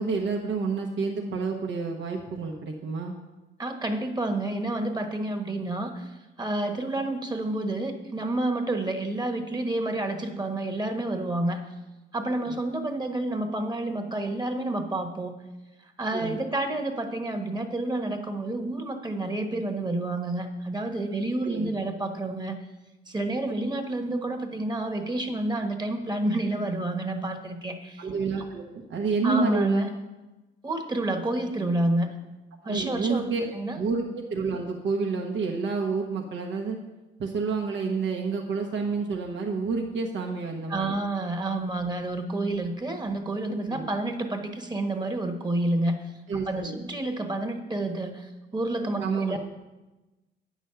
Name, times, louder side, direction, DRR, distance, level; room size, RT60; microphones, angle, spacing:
voice 1, 0.0-3.1 12.4-12.5 16.1-16.4 21.4-21.7 28.0-29.9 32.6-33.5 33.8-36.8 37.2-40.9 43.7-43.8 46.3-46.8 49.0-49.4, right 4 dB, 70° right, 1 dB, 1.2 m, -29 dB
voice 2, 3.6-6.1 6.4-11.6 12.1-15.4 15.8-22.6 23.1-28.1 29.2-29.9 30.6-32.1 32.6-33.8 40.7-46.0 46.5-49.4, right 2 dB, 20° right, 5 dB, 1.3 m, -29 dB
9.1 x 6.2 x 6.9 m, 1.1 s
cardioid pair, 90°, 20 cm